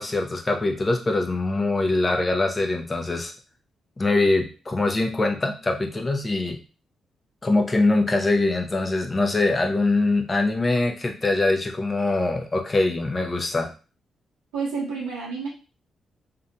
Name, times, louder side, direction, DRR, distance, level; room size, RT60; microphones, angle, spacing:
voice 1, 0.0-3.3 4.0-6.6 7.4-13.7, left 2 dB, 30° left, 3 dB, 0.6 m, -23 dB
voice 2, 14.5-15.5, right 5 dB, 85° right, -5 dB, 0.7 m, -29 dB
2.5 x 2.1 x 2.7 m, 0.34 s
hypercardioid pair, 45°, 0 cm